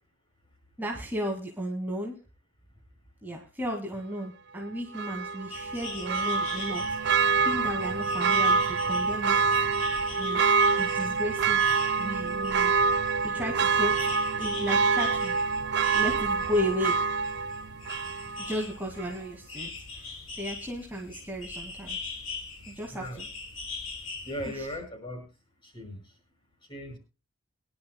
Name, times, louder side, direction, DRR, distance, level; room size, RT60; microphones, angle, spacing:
voice 1, 0.8-2.2 3.2-9.4 10.2-11.6 12.0-12.7 13.3-13.9 14.4-15.4 15.9-17.0 18.4-19.7 20.0-22.0 22.7-23.3 24.5-24.7, equal, 10° right, -1 dB, 2.1 m, -34 dB
Church bell, 4.9-18.6 19.0-19.1, right 5 dB, 50° right, 0.5 m, -26 dB
sound 1, 5.5-24.8, left 4 dB, 70° left, 5.6 m, -42 dB
voice 2, 22.9-23.2 24.3-25.3 25.6-26.0 26.7-27.0, equal, 25° left, 5 dB, 5.6 m, -37 dB
23.0 x 11.5 x 2.2 m, 0.32 s
head